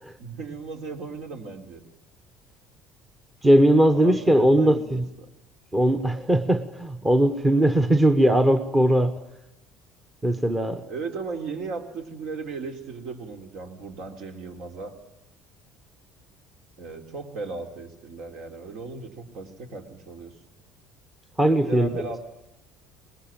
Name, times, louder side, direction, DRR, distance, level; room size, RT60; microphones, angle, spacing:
voice 1, 0.2-1.8 3.9-5.3 10.9-14.9 16.8-20.3 21.6-22.2, right 4 dB, 60° right, 5 dB, 3.7 m, -36 dB
voice 2, 3.4-5.0 5.7-9.1 10.2-10.8 21.4-21.9, right 1 dB, 10° right, 9 dB, 1.1 m, -19 dB
24.5 x 20.5 x 9.0 m, 0.91 s
cardioid pair, 155°, 0 cm